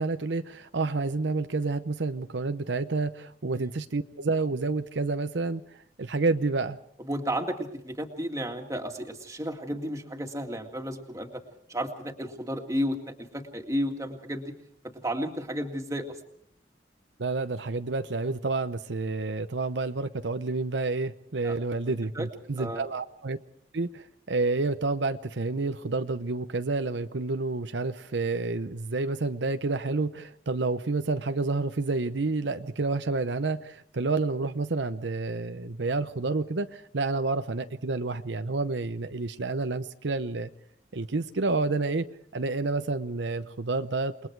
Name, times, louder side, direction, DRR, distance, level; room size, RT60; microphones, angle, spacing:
voice 1, 0.0-5.6 6.0-6.8 17.2-23.4 23.7-40.5 40.9-42.1 42.3-44.3, right 3 dB, 80° right, 9 dB, 0.8 m, -29 dB
voice 2, 7.0-11.4 11.7-14.5 15.0-16.1 21.4-21.6 21.9-22.3 22.6-22.8, equal, 20° right, 3 dB, 2.1 m, -32 dB
28.5 x 21.0 x 4.7 m, 0.67 s
head